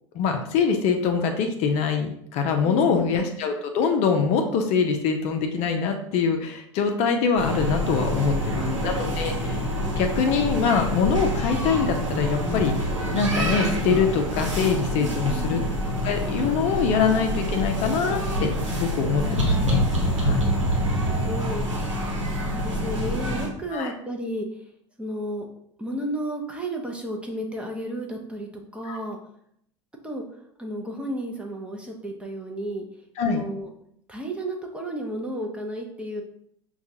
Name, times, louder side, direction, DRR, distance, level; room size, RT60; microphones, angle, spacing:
voice 1, 0.1-9.6 10.0-12.7 13.1-15.6 16.0-19.8 20.1-20.4 23.7-23.9 28.9-29.0 33.2-33.4, left 5 dB, 45° left, 4 dB, 0.5 m, -24 dB
voice 2, 2.6-3.1 8.1-8.9 15.0-15.6 20.4-21.7 22.4-24.7 25.0-25.5 25.8-29.2 30.0-30.2 30.6-32.9 33.3-33.7 34.1-36.2, right 1 dB, 5° right, 1 dB, 0.7 m, -33 dB
sound 1, 7.4-23.5, equal, 85° right, 1.0 m, -26 dB
5.5 x 2.3 x 2.7 m, 0.71 s
figure-of-eight pair, 75°, 16 cm